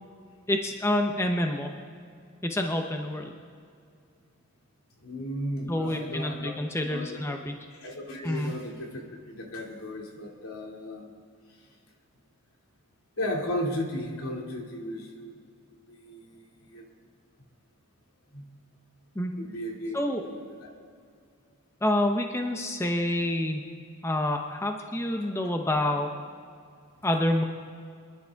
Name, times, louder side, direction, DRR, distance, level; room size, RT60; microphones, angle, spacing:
voice 1, 0.5-1.7 2.4-3.3 5.7-7.6 8.2-8.5 19.1-19.3 19.9-20.2 21.8-23.7 24.0-26.1 27.0-27.4, left 1 dB, 10° left, 3 dB, 0.7 m, -27 dB
voice 2, 5.0-7.2 7.8-11.1 13.2-15.4 15.9-16.8 18.3-18.5 19.3-20.0 20.2-20.7 25.2-25.3, left 1 dB, 85° left, 0 dB, 2.4 m, -35 dB
25.5 x 11.5 x 3.5 m, 2.3 s
head